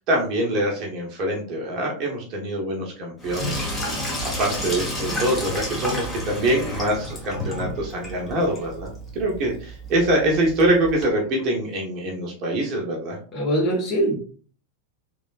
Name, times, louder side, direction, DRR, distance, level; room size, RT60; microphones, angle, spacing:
voice 1, 0.0-3.7 4.2-13.2, right 1 dB, 40° right, 0 dB, 1.0 m, -24 dB
Sink (filling or washing), 3.2-11.0, left 1 dB, 15° left, 1.2 m, -31 dB
voice 2, 13.3-14.2, right 1 dB, 35° left, -2 dB, 1.4 m, -22 dB
3.5 x 3.3 x 2.4 m, 0.42 s
figure-of-eight pair, 90°, 0 cm